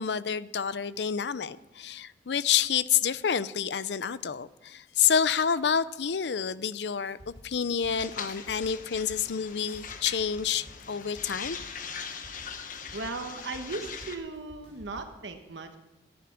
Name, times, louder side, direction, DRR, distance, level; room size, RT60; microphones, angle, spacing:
voice 1, 0.0-11.6, left 7 dB, 65° left, 0.5 m, -28 dB
sound 1, 7.0-15.0, equal, 30° left, 3.5 m, -52 dB
sound 2, 7.9-14.2, left 6 dB, 50° left, 1.2 m, -41 dB
voice 2, 12.9-15.8, right 3 dB, 85° right, 1.3 m, -37 dB
15.0 x 9.5 x 6.0 m
head